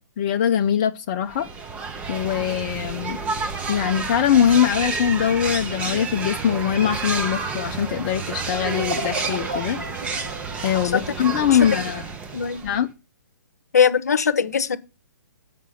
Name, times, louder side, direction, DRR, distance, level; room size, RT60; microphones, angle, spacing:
voice 1, 0.2-1.5 2.1-3.2 3.7-9.8 10.6-12.0 12.6-12.9, left 9 dB, 30° left, 0.4 m, -22 dB
sound 1, 1.3-12.9, right 4 dB, 10° right, 0.7 m, -30 dB
sound 2, 8.5-12.0, right 2 dB, 80° right, 1.2 m, -34 dB
voice 2, 13.7-14.8, left 7 dB, 60° left, 0.7 m, -20 dB
7.4 x 5.0 x 6.7 m
figure-of-eight pair, 125°, 10 cm